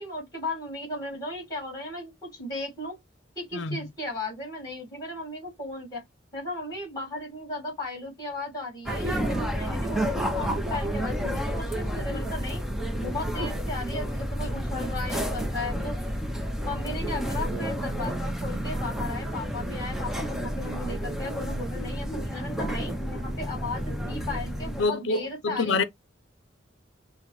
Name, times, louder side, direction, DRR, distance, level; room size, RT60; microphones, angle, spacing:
voice 1, 0.0-3.0 3.3-6.0 6.3-12.6 12.9-16.0 16.6-25.8, left 2 dB, 20° left, 3.2 m, -36 dB
voice 2, 3.5-3.9 24.8-25.8, left 3 dB, 75° left, 0.6 m, -26 dB
sound 1, 8.9-24.8, equal, ahead, 0.6 m, -30 dB
5.8 x 2.1 x 3.0 m
head